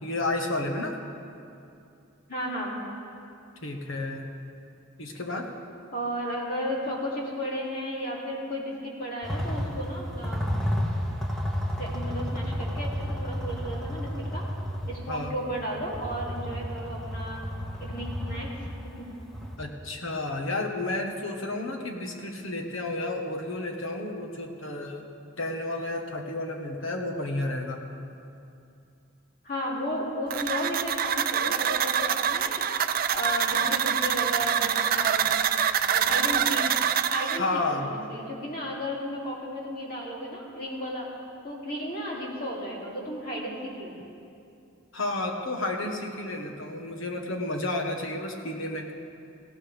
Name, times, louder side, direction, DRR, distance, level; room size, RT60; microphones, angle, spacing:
voice 1, 0.0-1.0 3.6-4.3 5.0-5.5 15.1-15.4 19.6-25.1 25.4-27.8 37.3-37.9 44.9-48.9, left 2 dB, 80° left, 3 dB, 1.5 m, -31 dB
voice 2, 2.3-2.8 5.9-10.5 11.8-14.4 14.9-17.4 17.8-19.1 29.4-32.9 33.1-35.3 35.8-36.7 37.1-41.1 41.4-43.9, equal, 45° left, -4 dB, 3.0 m, -34 dB
sound 1, 9.2-19.5, equal, ahead, 1.4 m, -31 dB
sound 2, 30.3-37.4, right 8 dB, 45° right, 0.4 m, -25 dB
19.0 x 16.0 x 3.5 m, 2.5 s
head